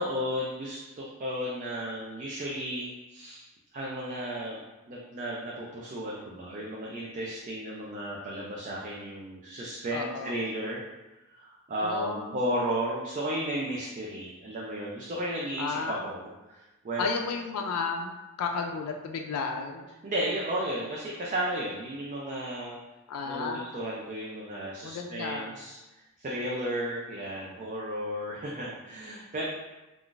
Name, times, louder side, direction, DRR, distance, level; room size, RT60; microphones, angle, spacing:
voice 1, 0.0-3.5 3.7-4.6 4.9-10.8 11.3-17.1 20.0-22.8 23.3-25.8 26.2-29.5, equal, 35° right, -4 dB, 0.4 m, -34 dB
voice 2, 9.9-10.3 11.8-12.4 15.6-16.1 17.0-18.1 18.4-19.9 23.1-23.6 24.8-25.5, left 5 dB, 90° left, 3 dB, 0.3 m, -33 dB
2.4 x 2.4 x 3.7 m, 1.1 s
head